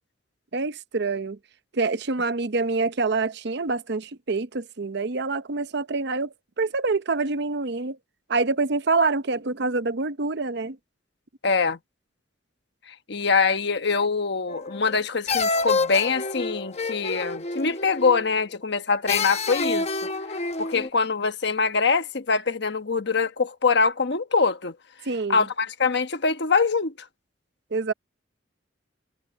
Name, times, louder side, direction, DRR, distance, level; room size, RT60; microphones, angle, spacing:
voice 1, 0.5-1.4 1.7-8.0 8.3-10.8 25.1-25.4 27.7-27.9, right 3 dB, 65° right, 0.8 m, -26 dB
voice 2, 11.4-11.8 12.9-20.1 20.6-24.7 25.3-26.9, left 4 dB, 65° left, 1.2 m, -24 dB
sound 1, 14.5-15.0 15.3-18.4 19.1-20.9, left 3 dB, 35° left, 1.0 m, -28 dB
head